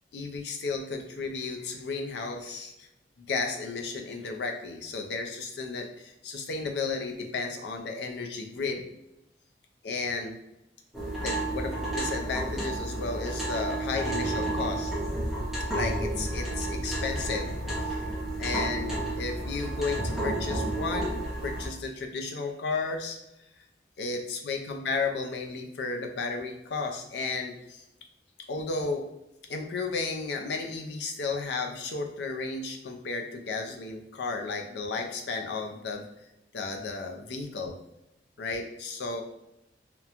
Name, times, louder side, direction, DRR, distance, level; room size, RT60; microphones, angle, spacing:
voice 1, 0.1-2.9 3.2-8.8 9.8-10.4 11.2-14.9 15.7-18.0 18.4-23.2 24.0-27.8 28.5-29.1 29.5-36.1 36.5-37.8 38.4-39.2, left 4 dB, 70° left, 3 dB, 0.4 m, -33 dB
sound 1, 10.9-21.7, right 1 dB, ahead, 0.5 m, -31 dB
2.9 x 2.1 x 2.4 m, 0.85 s
head